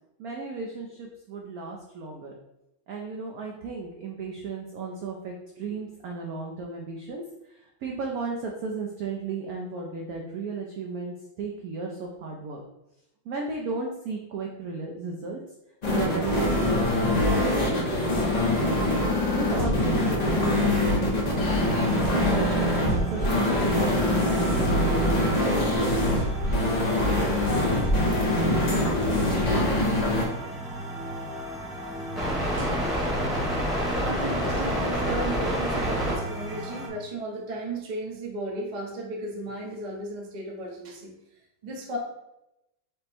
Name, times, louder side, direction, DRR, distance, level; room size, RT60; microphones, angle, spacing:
voice 1, 0.2-2.3 2.9-12.6 13.2-15.4 15.9-18.8 19.3-21.8 22.3-25.0, right 4 dB, 75° right, 0 dB, 0.8 m, -35 dB
sound 1, 15.8-30.3, left 1 dB, 70° left, 0.4 m, -24 dB
sound 2, 21.5-36.9, right 1 dB, ahead, 0.8 m, -30 dB
voice 2, 34.0-41.1 41.6-42.0, right 1 dB, 40° right, -2 dB, 0.6 m, -35 dB
5.2 x 2.1 x 4.2 m, 0.89 s
omnidirectional pair, 2.1 m